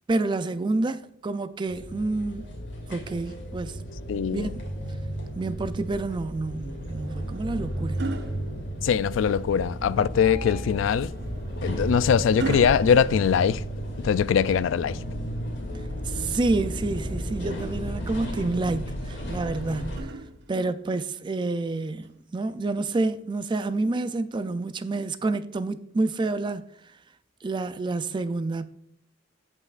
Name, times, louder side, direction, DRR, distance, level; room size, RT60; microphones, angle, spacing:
voice 1, 0.1-2.5 2.9-3.8 4.3-4.6 5.3-8.0 16.0-20.1 20.5-26.6 27.4-28.7, right 2 dB, 25° right, 0.3 m, -28 dB
sound 1, 1.7-20.0, equal, 65° left, 2.8 m, -34 dB
voice 2, 4.1-4.5 8.8-11.1 11.6-13.6 14.0-15.0, left 7 dB, 80° left, 0.3 m, -22 dB
sound 2, 6.8-9.3 10.9-14.1 15.8-17.0 19.0-20.8 22.0-22.3, right 3 dB, 60° right, 0.7 m, -39 dB
16.0 x 5.4 x 2.4 m
head